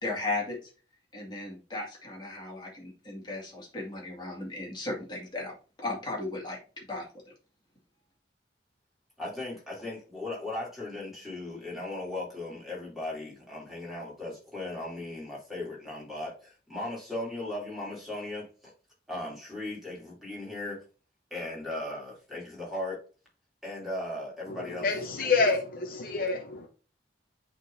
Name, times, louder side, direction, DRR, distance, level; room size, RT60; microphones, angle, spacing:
voice 1, 0.0-0.7 1.1-7.1, left 2 dB, 25° left, 2.2 m, -36 dB
voice 2, 9.2-18.7 19.1-20.8 21.3-23.0 23.6-24.9, left 1 dB, ahead, 2.9 m, -37 dB
voice 3, 24.5-26.7, left 4 dB, 50° left, 0.8 m, -28 dB
10.0 x 3.8 x 2.7 m
head